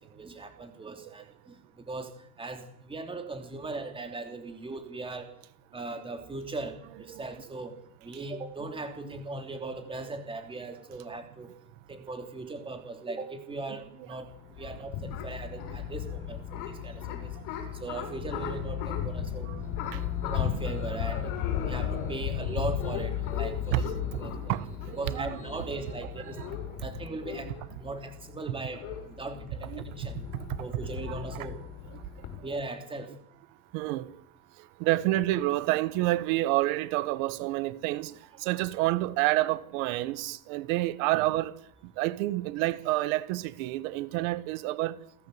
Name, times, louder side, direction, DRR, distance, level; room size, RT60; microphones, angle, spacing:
voice 1, 0.0-2.1 2.4-5.3 5.7-7.7 8.0-11.5 11.9-17.3 17.8-19.5 20.2-21.3 21.6-23.9 24.2-24.3 25.0-26.4 26.8-27.5 27.8-30.2 30.6-31.6 32.4-33.1, right 3 dB, 15° right, 3.1 m, -39 dB
sound 1, 14.2-32.4, left 9 dB, 80° left, 6.6 m, -35 dB
Piano, 19.6-26.5, left 3 dB, 20° left, 4.5 m, -52 dB
voice 2, 24.5-25.4 27.5-27.6 29.7-29.8 33.7-34.1 34.8-38.1 38.4-41.5 42.0-45.0, right 17 dB, 85° right, 1.7 m, -28 dB
28.5 x 14.5 x 8.1 m
cardioid pair, 160°, 40 cm